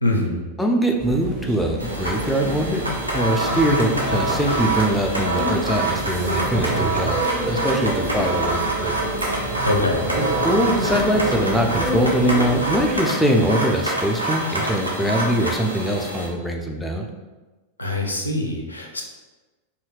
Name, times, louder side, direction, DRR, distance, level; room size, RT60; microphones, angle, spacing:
voice 1, 0.0-0.4 9.6-10.1 17.8-19.0, left 1 dB, 85° left, 1 dB, 0.4 m, -23 dB
voice 2, 0.6-2.8 3.1-8.9 10.4-17.0, right 1 dB, 5° left, 0 dB, 0.3 m, -22 dB
sound 1, 1.0-12.9, right 1 dB, 45° right, 0.6 m, -28 dB
sound 2, 1.8-16.3, right 2 dB, 85° right, 0.5 m, -26 dB
2.7 x 2.3 x 3.1 m, 1.2 s
figure-of-eight pair, 90°, 0 cm